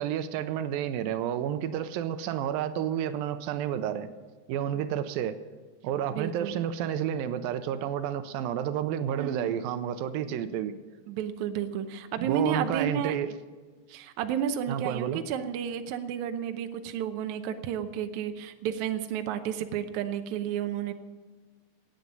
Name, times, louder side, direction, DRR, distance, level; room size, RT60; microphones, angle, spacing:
voice 1, 0.0-4.1 4.5-5.4 5.8-10.7 12.2-13.3 14.7-15.2, right 10 dB, 85° right, 10 dB, 2.4 m, -30 dB
voice 2, 6.1-6.6 9.2-9.6 11.1-13.2 13.9-20.9, right 8 dB, 70° right, 8 dB, 1.9 m, -32 dB
17.0 x 9.3 x 5.4 m, 1.4 s
omnidirectional pair, 4.1 m